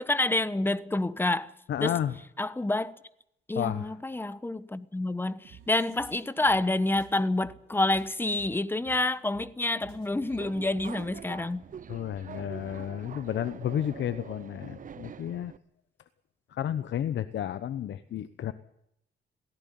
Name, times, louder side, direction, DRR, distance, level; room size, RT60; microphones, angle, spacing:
voice 1, 0.0-1.5 1.8-2.0 2.4-2.9 3.5-11.7, left 2 dB, 10° left, 1.1 m, -28 dB
voice 2, 1.7-2.2 3.5-3.9 4.2-4.3 11.9-15.5 16.5-18.5, left 10 dB, 65° left, 1.0 m, -32 dB
sound 1, 5.4-11.2, right 8 dB, 90° right, 3.3 m, -54 dB
Subway metro underground, 9.9-15.6, right 8 dB, 40° right, 0.7 m, -45 dB
17.5 x 16.0 x 9.5 m
cardioid pair, 90°, 20 cm